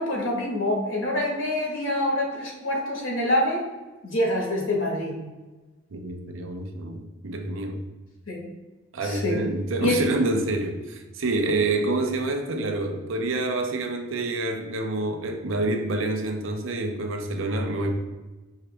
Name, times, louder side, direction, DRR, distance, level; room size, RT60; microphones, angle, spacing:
voice 1, 0.0-3.6 4.0-5.2 8.3-8.4 9.0-9.5 9.8-10.0, left 1 dB, 70° left, -1 dB, 1.3 m, -26 dB
voice 2, 5.9-7.8 8.9-17.9, right 2 dB, 70° right, 4 dB, 0.6 m, -27 dB
4.9 x 2.9 x 3.3 m, 1.2 s
head